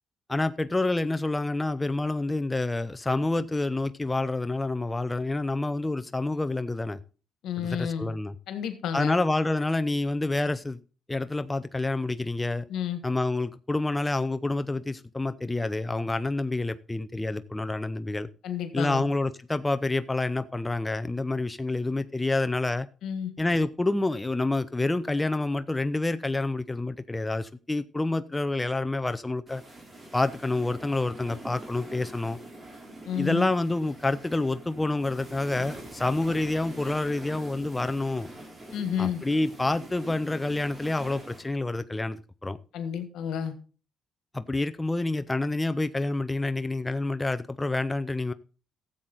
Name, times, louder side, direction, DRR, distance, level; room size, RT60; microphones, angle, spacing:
voice 1, 0.3-7.0 7.6-8.3 8.9-10.8 11.1-12.6 13.0-18.3 18.7-22.9 23.4-29.6 30.1-32.4 33.2-38.3 39.0-42.6 44.3-48.3, left 2 dB, 15° left, 0.5 m, -28 dB
voice 2, 7.4-8.1 8.5-9.1 12.7-13.0 18.4-19.0 23.0-23.3 33.1-33.5 38.7-39.2 42.7-43.5, left 9 dB, 80° left, 1.6 m, -31 dB
sound 1, 29.5-41.4, right 1 dB, 30° right, 3.7 m, -44 dB
13.5 x 7.7 x 3.9 m
cardioid pair, 90°, 0 cm